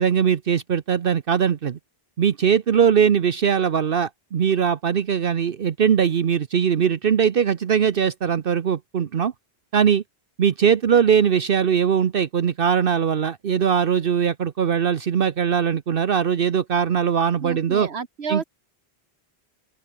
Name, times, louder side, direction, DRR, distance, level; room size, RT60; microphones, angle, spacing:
voice 1, 0.0-1.8 2.2-9.3 9.7-10.0 10.4-17.9 18.3-18.4, right 7 dB, 60° right, 1.0 m, -20 dB
voice 2, 17.4-18.4, right 5 dB, 80° right, 1.8 m, -30 dB
open air
omnidirectional pair, 1.1 m